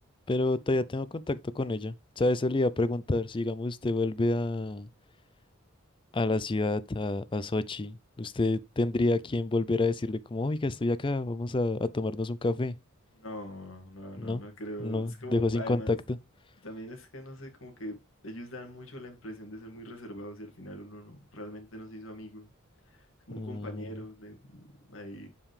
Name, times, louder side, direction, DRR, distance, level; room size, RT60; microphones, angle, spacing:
voice 1, 0.3-4.9 6.1-12.8 14.2-14.4 14.8-16.0 23.4-23.9, left 2 dB, 25° left, 0.4 m, -29 dB
voice 2, 13.2-16.0 16.6-18.0 18.2-22.5 22.8-25.3, equal, 70° left, 2.1 m, -42 dB
7.2 x 5.4 x 3.3 m
head